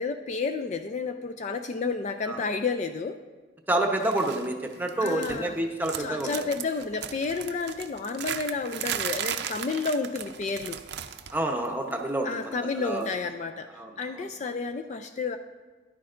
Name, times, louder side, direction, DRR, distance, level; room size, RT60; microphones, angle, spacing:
voice 1, 0.0-3.2 5.0-5.6 6.0-10.8 12.2-13.7 14.0-15.4, left 4 dB, 40° left, 7 dB, 0.3 m, -31 dB
voice 2, 3.7-6.3 11.3-13.1 13.7-14.3, right 1 dB, 10° right, 2 dB, 0.8 m, -29 dB
sound 1, 4.0-4.5 4.7-5.5 5.8-11.4 11.7-11.9 13.0-13.1, right 9 dB, 60° right, 0.5 m, -36 dB
13.5 x 10.5 x 2.5 m, 1.3 s
head